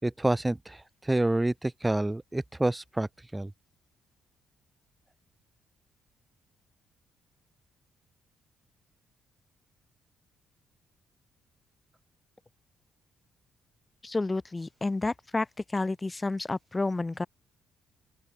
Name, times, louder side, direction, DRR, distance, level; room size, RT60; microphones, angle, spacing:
voice 1, 0.0-3.5, right 1 dB, 10° right, 4.1 m, -28 dB
voice 2, 14.0-17.3, left 2 dB, 15° left, 6.2 m, -30 dB
open air
cardioid pair, 175°, 0 cm